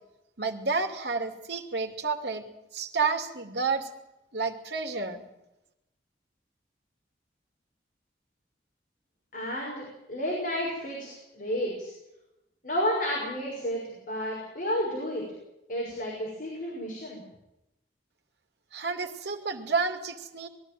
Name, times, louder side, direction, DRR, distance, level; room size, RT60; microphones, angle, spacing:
voice 1, 0.4-2.4 2.7-3.9 4.3-5.2 18.7-20.5, right 4 dB, 75° right, 5 dB, 2.4 m, -30 dB
voice 2, 9.3-11.9 12.6-15.2 15.7-17.2, equal, 50° left, -2 dB, 6.2 m, -31 dB
21.5 x 14.0 x 9.2 m, 0.88 s
head